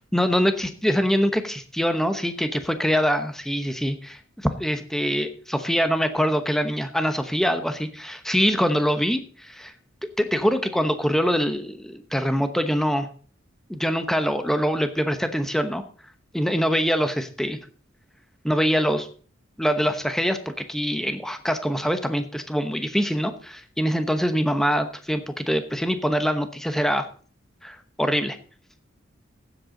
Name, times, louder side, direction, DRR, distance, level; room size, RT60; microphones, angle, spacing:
voice 1, 0.1-4.2 4.6-9.7 10.2-13.1 13.7-15.8 16.3-17.6 18.4-19.1 19.6-27.1 27.6-28.4, equal, ahead, 8 dB, 0.9 m, -24 dB
15.0 x 8.0 x 3.9 m, 0.43 s
head